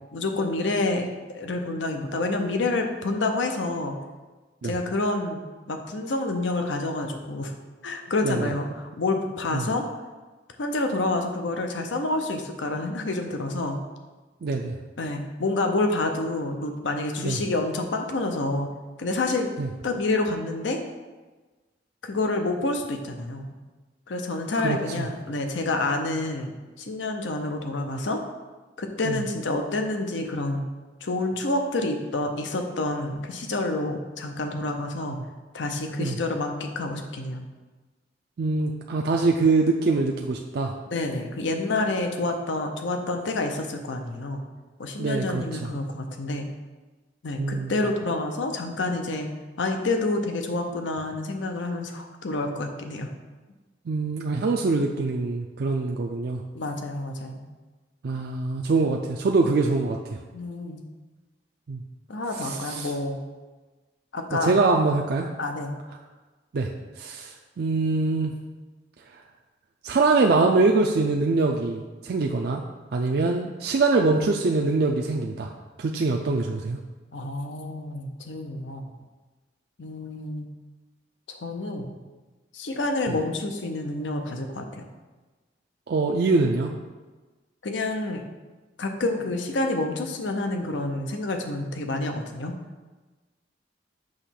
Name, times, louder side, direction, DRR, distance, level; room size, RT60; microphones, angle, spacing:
voice 1, 0.1-4.0 4.6-5.4 5.7-7.5 7.8-9.8 10.6-13.8 15.0-18.7 19.0-19.5 19.8-20.8 22.0-23.5 24.1-28.2 28.8-30.6 31.0-35.2 35.5-37.5 40.9-44.4 44.8-46.5 47.2-49.3 49.6-53.1 56.5-57.5 60.3-60.8 62.1-63.2 64.1-64.5 65.4-65.7 77.1-78.9 79.8-80.5 81.3-82.0 82.5-84.9 87.6-88.2 88.8-92.6, left 2 dB, 90° left, 5 dB, 0.7 m, -28 dB
voice 2, 14.4-14.7 17.2-17.4 19.6-19.7 24.6-25.1 29.0-29.2 35.1-35.2 36.0-36.1 38.4-40.7 45.0-45.7 47.4-47.7 53.9-56.4 58.0-60.2 61.7-61.8 62.4-62.9 64.4-65.3 66.5-66.7 67.0-68.3 69.8-72.6 72.9-75.5 75.8-76.8 85.9-86.7, right 3 dB, 60° right, 1 dB, 0.4 m, -24 dB
6.4 x 3.0 x 5.8 m, 1.3 s
head